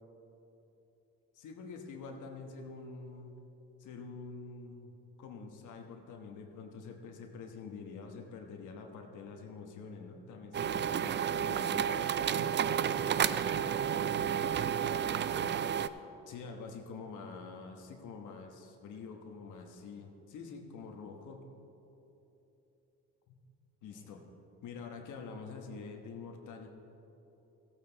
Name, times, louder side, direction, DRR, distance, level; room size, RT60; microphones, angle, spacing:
voice 1, 1.3-3.4 3.8-4.9 5.2-12.1 16.2-21.4 23.3-23.4 23.8-24.2 24.6-26.7, left 4 dB, 80° left, 3 dB, 1.2 m, -46 dB
sound 1, 10.5-15.9, right 8 dB, 40° right, 0.4 m, -31 dB
voice 2, 14.5-15.6 23.9-24.1, right 1 dB, 15° right, -3 dB, 2.5 m, -51 dB
14.5 x 9.0 x 4.0 m, 3.0 s
cardioid pair, 90°, 30 cm